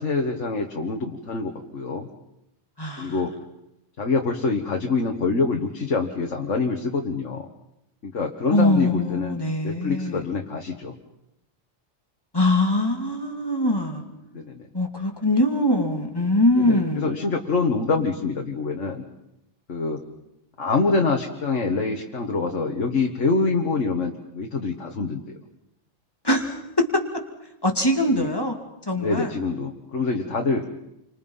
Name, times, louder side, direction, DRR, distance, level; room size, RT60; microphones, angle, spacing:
voice 1, 0.0-2.1 3.0-3.3 4.0-7.5 8.0-9.4 9.6-10.9 14.3-14.7 16.6-19.0 19.7-20.0 20.6-25.4 28.1-28.3 28.9-30.6, left 4 dB, 70° left, 2 dB, 2.0 m, -25 dB
voice 2, 2.8-3.2 8.5-10.2 12.3-14.0 14.7-17.2 26.2-27.0 27.6-28.6 28.9-29.3, left 1 dB, 20° left, 3 dB, 2.7 m, -22 dB
29.5 x 25.0 x 5.7 m, 0.85 s
omnidirectional pair, 1.3 m